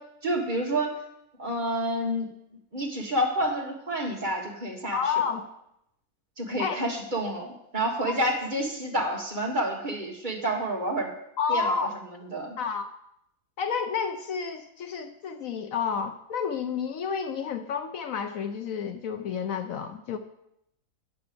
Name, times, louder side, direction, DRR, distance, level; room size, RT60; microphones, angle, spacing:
voice 1, 0.2-1.0 1.4-2.3 2.7-5.0 6.4-11.1 11.5-11.9 12.3-12.6, right 1 dB, 30° right, 0 dB, 1.6 m, -29 dB
voice 2, 4.9-5.5 6.6-6.8 8.0-8.1 11.4-11.9 12.6-12.9 13.6-20.2, left 6 dB, 65° left, 8 dB, 1.0 m, -30 dB
9.0 x 6.9 x 6.7 m, 0.79 s
omnidirectional pair, 1.6 m